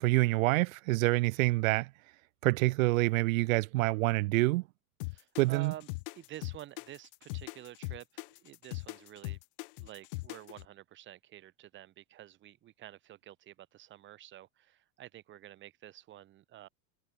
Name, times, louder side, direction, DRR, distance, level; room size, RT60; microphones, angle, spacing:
voice 1, 0.0-1.9 2.4-4.6 5.4-5.7, right 21 dB, 65° right, 0.9 m, -27 dB
sound 1, 5.0-10.6, left 26 dB, 40° left, 0.5 m, -40 dB
voice 2, 5.1-5.9 6.2-8.1 8.4-9.4 9.8-16.7, right 13 dB, 25° right, 2.7 m, -49 dB
supercardioid pair, 170°, 44 cm